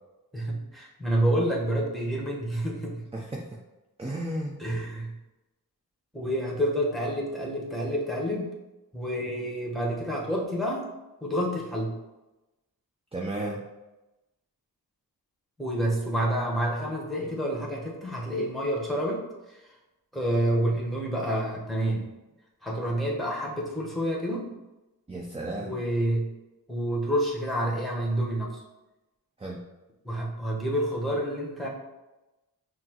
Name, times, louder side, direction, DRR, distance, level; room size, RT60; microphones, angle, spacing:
voice 1, 0.3-3.0 4.6-5.1 6.1-8.5 8.9-10.9 11.2-11.9 15.6-19.3 20.1-22.1 22.6-24.5 25.6-26.3 26.7-28.6 30.0-31.7, right 1 dB, ahead, -3 dB, 1.2 m, -28 dB
voice 2, 3.1-3.5 4.0-4.6 13.1-13.6 25.1-25.8 29.4-29.6, right 1 dB, 15° right, -2 dB, 0.6 m, -33 dB
5.8 x 2.0 x 2.9 m, 1.0 s
cardioid pair, 55°, 38 cm